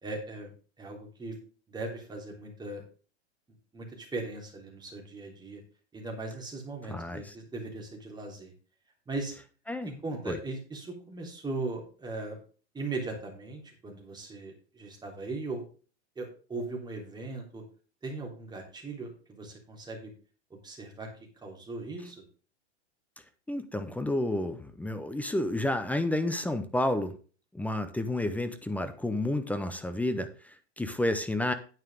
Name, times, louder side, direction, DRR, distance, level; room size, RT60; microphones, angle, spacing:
voice 1, 0.0-0.5 0.8-1.4 1.7-2.8 3.7-5.6 5.9-8.5 9.1-9.3 10.0-12.4 12.7-15.6 16.1-17.6 18.0-20.1 20.6-21.1 21.4-22.2, right 3 dB, 10° right, 1 dB, 3.3 m, -38 dB
voice 2, 6.9-7.2 9.7-10.0 10.3-10.4 23.5-27.2 27.5-31.5, left 1 dB, 5° left, 10 dB, 0.7 m, -30 dB
9.5 x 9.1 x 3.6 m, 0.37 s
hypercardioid pair, 125°, 35 cm